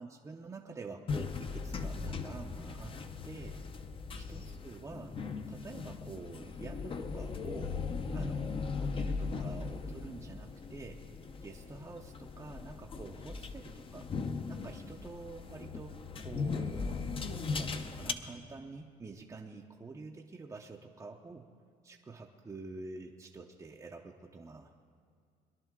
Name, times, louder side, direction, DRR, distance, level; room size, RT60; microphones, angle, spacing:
voice 1, 0.0-3.0 3.2-3.7 4.1-5.2 5.5-7.8 8.1-11.0 11.4-17.1 17.6-21.5 21.8-24.8, right 3 dB, 20° right, 0 dB, 0.6 m, -48 dB
sound 1, 1.1-18.1, left 4 dB, 30° left, 0.7 m, -38 dB
21.5 x 11.0 x 3.6 m, 2.2 s
cardioid pair, 110°, 17 cm